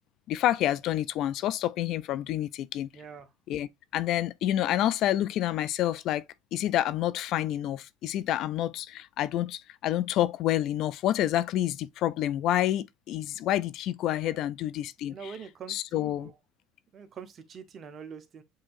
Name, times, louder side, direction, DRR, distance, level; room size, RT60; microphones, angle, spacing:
voice 1, 0.3-2.9 3.5-6.2 6.5-15.1 15.7-16.3, left 13 dB, 60° left, 0.3 m, -28 dB
voice 2, 2.9-3.3 14.2-14.5 15.1-16.3 16.9-18.4, right 6 dB, 40° right, 0.9 m, -44 dB
7.4 x 2.8 x 2.5 m
supercardioid pair, 100°, 0 cm